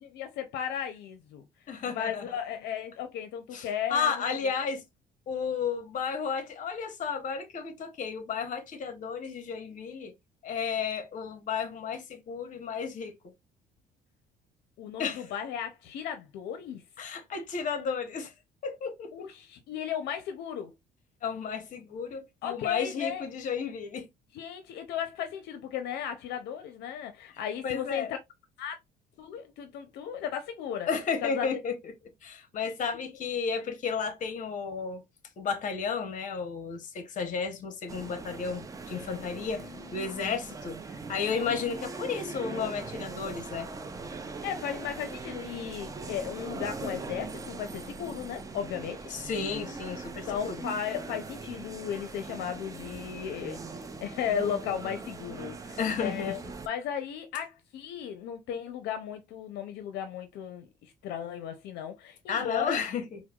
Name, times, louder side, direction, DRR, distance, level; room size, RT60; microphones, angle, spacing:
voice 1, 0.0-1.4 1.9-4.7 14.8-16.8 19.1-20.7 22.4-23.2 24.3-28.2 28.6-28.7 29.2-30.9 31.2-31.5 39.2-40.4 44.4-49.1 50.3-56.4 56.7-62.8, left 8 dB, 80° left, 0.5 m, -35 dB
voice 2, 1.7-2.2 3.5-4.8 5.3-10.1 10.4-13.1 15.0-15.3 17.0-18.3 18.6-19.1 21.2-24.1 27.6-28.1 30.9-31.7 32.2-35.0 35.4-40.8 41.1-43.7 49.1-50.6 55.8-56.3 62.3-63.2, left 6 dB, 50° left, 0.9 m, -33 dB
sound 1, 37.9-56.7, right 3 dB, 20° right, 0.5 m, -41 dB
4.5 x 2.0 x 2.3 m
cardioid pair, 110°, 17 cm